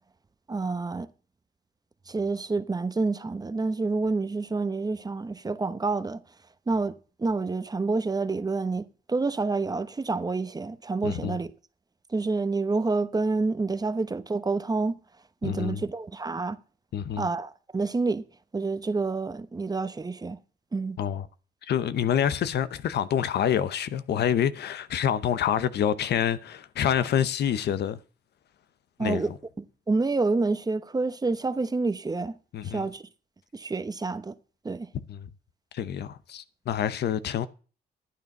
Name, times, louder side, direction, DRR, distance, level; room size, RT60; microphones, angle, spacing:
voice 1, 0.5-1.1 2.1-6.2 6.7-6.9 7.2-11.5 12.1-15.0 15.4-16.6 17.2-18.2 18.5-20.4 20.7-21.0 29.0-29.3 29.6-32.4 32.6-33.0 33.5-34.3 34.6-34.9, right 3 dB, 20° right, 0.9 m, -28 dB
voice 2, 11.0-11.4 15.4-15.8 16.9-17.3 21.0-21.3 21.7-28.0 29.0-29.4 32.5-32.9 35.1-35.3 35.7-37.5, left 9 dB, 70° left, 0.8 m, -27 dB
11.5 x 9.5 x 5.3 m
cardioid pair, 100°, 18 cm